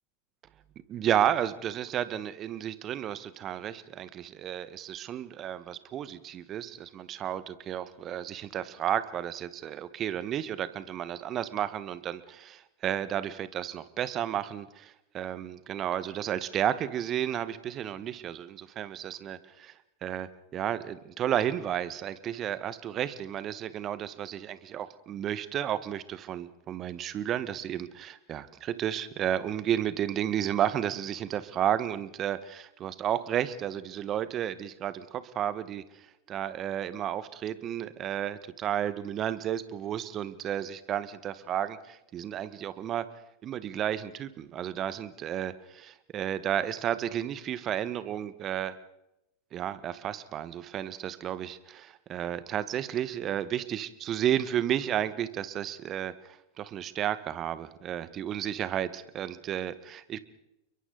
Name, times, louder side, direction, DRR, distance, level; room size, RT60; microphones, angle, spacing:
voice 1, 0.9-19.7 20.0-35.8 36.3-43.0 43.4-48.8 49.5-60.2, right 10 dB, 35° right, 15 dB, 1.4 m, -32 dB
30.0 x 23.0 x 4.0 m, 0.88 s
figure-of-eight pair, 90°, 0 cm